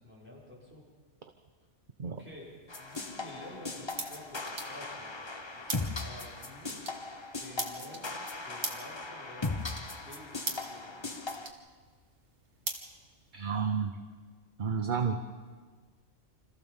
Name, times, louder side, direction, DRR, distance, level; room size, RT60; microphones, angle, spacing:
voice 1, 0.0-0.8 2.0-5.1 5.5-6.8 7.4-9.5 10.0-11.1, left 1 dB, 10° right, -6 dB, 6.3 m, -51 dB
sound 1, 2.2-13.7, right 3 dB, 75° right, 2.2 m, -44 dB
sound 2, 2.7-11.5, left 3 dB, 25° left, 1.0 m, -39 dB
voice 2, 13.3-13.9 14.6-15.3, right 6 dB, 45° right, 6 dB, 1.0 m, -31 dB
26.5 x 14.5 x 7.1 m, 1.5 s
omnidirectional pair, 1.2 m